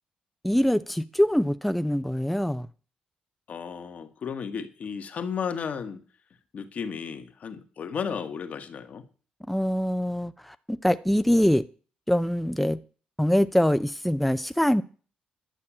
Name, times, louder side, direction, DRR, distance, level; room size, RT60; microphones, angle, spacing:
voice 1, 0.4-2.7 9.5-11.6 12.1-12.8 13.2-14.8, equal, 5° left, 0.6 m, -24 dB
voice 2, 3.5-6.0 6.5-9.0, left 6 dB, 60° left, 1.8 m, -34 dB
11.0 x 5.9 x 8.8 m
cardioid pair, 75°, 3 cm